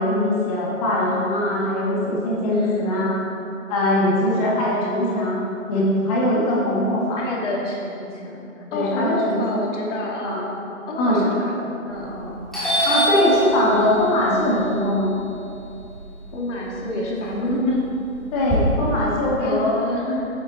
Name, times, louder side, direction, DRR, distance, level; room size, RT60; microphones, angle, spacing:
voice 1, 0.0-3.1 3.7-5.4 5.7-7.2 8.7-9.4 10.2-10.4 11.0-11.2 12.8-15.1 18.3-19.7, left 1 dB, 25° left, -5 dB, 2.1 m, -21 dB
voice 2, 2.5-2.9 4.0-4.4 7.2-10.6 10.9-12.4 16.3-17.8 19.4-20.3, left 1 dB, 60° left, -2 dB, 2.5 m, -28 dB
Doorbell, 11.9-12.2 12.5-16.7 17.0-18.6, right 1 dB, ahead, 2.1 m, -26 dB
10.0 x 8.1 x 4.2 m, 2.6 s
hypercardioid pair, 150°, 41 cm